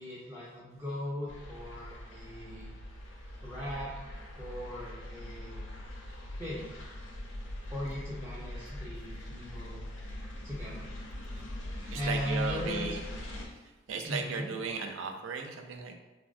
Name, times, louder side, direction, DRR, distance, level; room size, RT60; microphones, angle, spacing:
voice 1, 0.0-2.7 3.4-3.9 4.4-5.7 6.4-6.8 7.7-9.8 10.4-10.9 11.9-12.9 14.0-14.5, left 1 dB, 15° right, -9 dB, 0.4 m, -38 dB
sound 1, 1.3-13.5, left 1 dB, 85° left, 0.5 m, -42 dB
voice 2, 11.8-13.0 13.5-13.6 13.9-16.0, right 5 dB, 80° right, 4 dB, 0.3 m, -36 dB
3.3 x 2.0 x 2.5 m, 1.1 s
head